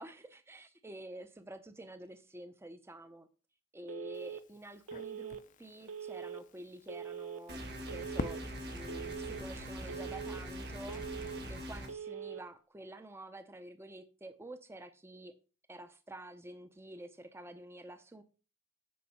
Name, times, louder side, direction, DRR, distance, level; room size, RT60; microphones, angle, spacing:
voice 1, 0.0-3.3 3.7-7.6 7.9-8.4 8.7-15.3 15.7-18.2, right 1 dB, 10° right, 0.5 m, -49 dB
Telephone, 3.9-4.4 4.9-5.4 5.9-6.4 6.9-7.4 7.9-8.4 8.9-9.4 9.9-10.4 10.9-11.4 11.9-12.4, right 8 dB, 85° right, 0.7 m, -43 dB
Crackle, 4.1-11.9, left 3 dB, 35° left, 0.5 m, -48 dB
sound 1, 7.5-11.9, equal, 50° right, 1.8 m, -43 dB
8.5 x 5.2 x 5.5 m
head